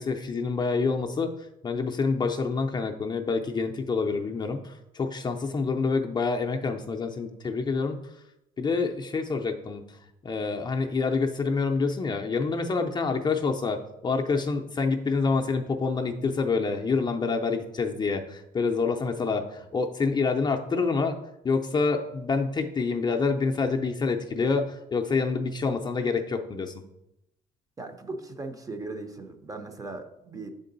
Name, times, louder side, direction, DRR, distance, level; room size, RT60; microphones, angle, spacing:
voice 1, 0.0-1.3 1.6-8.0 8.6-9.8 10.2-21.2 21.4-26.7, left 4 dB, 25° left, 3 dB, 0.5 m, -27 dB
voice 2, 27.8-30.5, right 3 dB, 20° right, 6 dB, 0.6 m, -38 dB
7.2 x 3.7 x 3.9 m, 0.85 s
cardioid pair, 110°, 17 cm